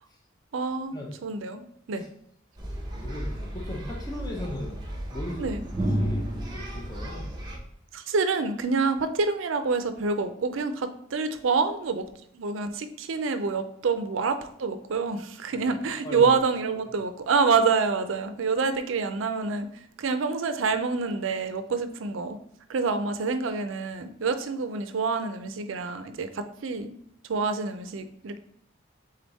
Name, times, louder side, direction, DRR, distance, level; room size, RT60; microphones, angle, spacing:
voice 1, 0.5-1.6 1.9-2.1 5.4-5.6 7.9-12.1 12.3-22.4 22.7-26.9 27.3-28.4, right 4 dB, 80° right, 10 dB, 0.5 m, -27 dB
sound 1, 2.6-7.6, equal, 20° right, 0.8 m, -32 dB
voice 2, 2.9-4.8 5.1-5.5 5.8-7.3 15.5-15.7 16.0-16.3, left 1 dB, 20° left, -1 dB, 0.7 m, -38 dB
3.8 x 3.5 x 4.0 m, 0.69 s
head